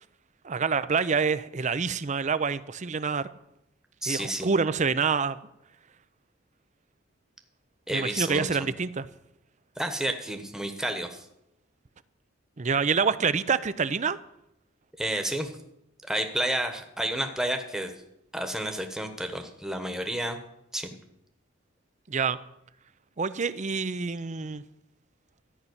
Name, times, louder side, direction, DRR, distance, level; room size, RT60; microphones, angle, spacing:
voice 1, 0.4-3.3 4.1-5.4 7.9-9.1 12.6-14.2 22.1-22.4 23.2-24.6, right 5 dB, 40° right, 15 dB, 0.6 m, -27 dB
voice 2, 4.0-4.5 7.9-8.5 9.8-11.3 15.0-15.5 16.0-17.9 18.3-20.4 20.7-21.0, right 1 dB, 5° right, 5 dB, 1.2 m, -30 dB
13.5 x 5.7 x 9.6 m, 0.82 s
head